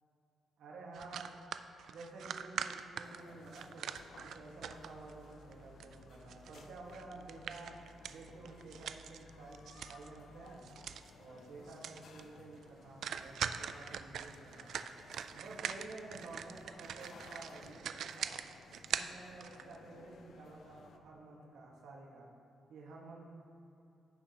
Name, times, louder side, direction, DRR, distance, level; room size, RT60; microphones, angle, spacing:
voice 1, 0.6-1.3 1.8-3.9 4.2-7.8 8.0-10.7 11.1-14.9 15.3-18.4 18.9-22.3 22.7-23.3, right 3 dB, 90° right, -2 dB, 1.6 m, -51 dB
sound 1, 0.9-5.1 5.5-10.2 10.5-11.1 11.4-11.5 11.7-12.2 12.5-12.6 13.0-19.8, right 8 dB, 70° right, 0.3 m, -43 dB
sound 2, 3.0-21.0, left 5 dB, 65° left, 0.6 m, -59 dB
sound 3, 3.9-10.7, equal, 40° left, 1.9 m, -62 dB
15.5 x 6.0 x 2.9 m, 2.8 s
cardioid pair, 130°, 0 cm